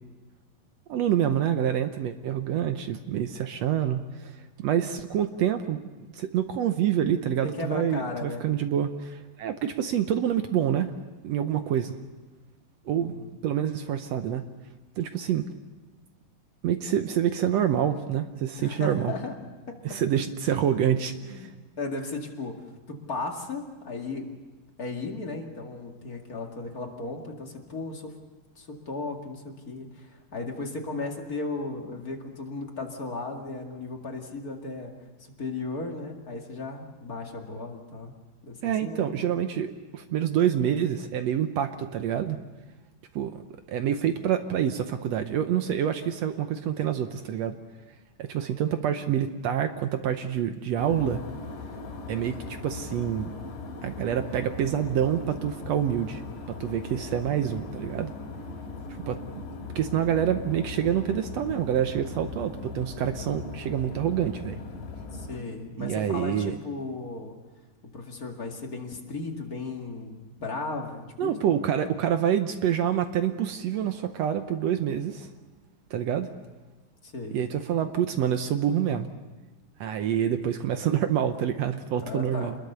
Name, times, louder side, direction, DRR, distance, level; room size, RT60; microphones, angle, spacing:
voice 1, 0.9-10.9 11.2-12.0 12.9-13.2 13.4-14.4 15.0-15.5 16.6-19.1 19.8-21.5 38.6-42.4 43.1-43.4 43.7-47.6 48.2-51.2 52.1-53.3 53.8-56.2 56.5-58.1 59.1-59.2 59.7-64.6 65.8-66.6 71.2-75.3 75.9-76.3 77.3-79.1 79.8-82.5, right 9 dB, 75° right, 8 dB, 1.6 m, -27 dB
voice 2, 7.4-8.5 12.9-13.3 18.6-19.3 19.7-19.8 21.2-21.5 21.8-24.3 24.8-28.2 28.6-34.9 35.2-38.1 38.4-39.1 65.1-67.4 67.8-71.4 77.0-77.4 82.0-82.6, left 3 dB, 30° left, 1 dB, 2.1 m, -36 dB
sound 1, 50.8-65.4, left 3 dB, 75° left, 4.3 m, -39 dB
27.0 x 21.0 x 6.8 m, 1.3 s
omnidirectional pair, 3.9 m